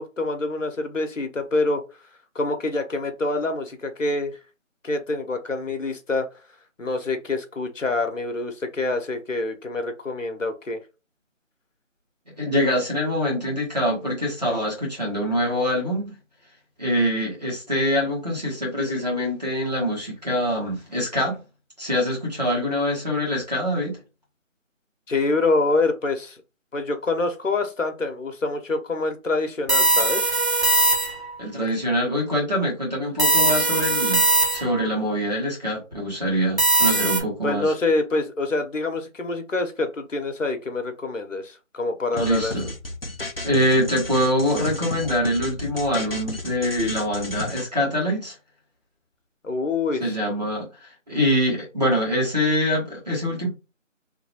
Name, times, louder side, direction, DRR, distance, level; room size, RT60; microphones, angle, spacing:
voice 1, 0.0-1.8 2.3-4.4 4.8-6.3 6.8-10.8 25.1-26.4 26.7-30.3 31.6-31.7 37.4-42.5 49.4-50.2, left 3 dB, 70° left, 6 dB, 0.9 m, -26 dB
voice 2, 12.4-16.1 16.8-21.4 21.8-24.0 31.4-37.7 42.1-42.7 43.4-48.3 50.0-50.7 51.1-53.5, equal, 30° right, -4 dB, 1.5 m, -24 dB
sound 1, 29.7-31.4 33.2-34.9 36.6-37.2, right 3 dB, 55° right, 1.4 m, -20 dB
sound 2, 42.2-47.7, left 1 dB, 50° left, 0.5 m, -33 dB
3.1 x 2.9 x 2.8 m, 0.30 s
figure-of-eight pair, 180°, 39 cm